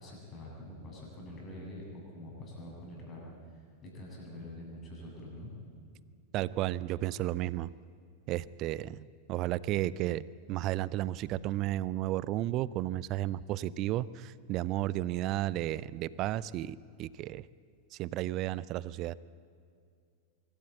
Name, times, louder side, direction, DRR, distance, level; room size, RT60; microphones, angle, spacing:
voice 1, 0.0-3.2 3.5-5.5, left 1 dB, 30° left, -2 dB, 7.8 m, -45 dB
voice 2, 6.3-7.7 8.3-17.5 17.9-19.1, right 14 dB, 40° right, 20 dB, 0.5 m, -33 dB
24.5 x 14.0 x 8.9 m, 2.3 s
figure-of-eight pair, 90°, 0 cm